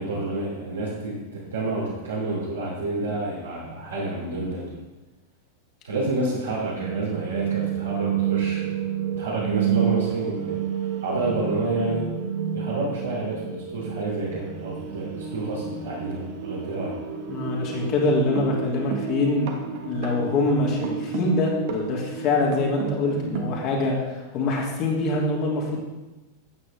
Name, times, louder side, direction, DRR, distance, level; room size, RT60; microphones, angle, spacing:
voice 1, 0.0-4.7 5.8-8.7 9.0-10.6 11.0-12.1 12.5-16.9, right 2 dB, 75° right, -7 dB, 3.0 m, -29 dB
sound 1, 6.8-23.6, right 9 dB, 50° right, 1.3 m, -30 dB
voice 2, 17.3-19.5 19.8-25.8, left 2 dB, 40° left, -2 dB, 2.8 m, -24 dB
13.0 x 8.7 x 3.6 m, 1.1 s
figure-of-eight pair, 90°, 0 cm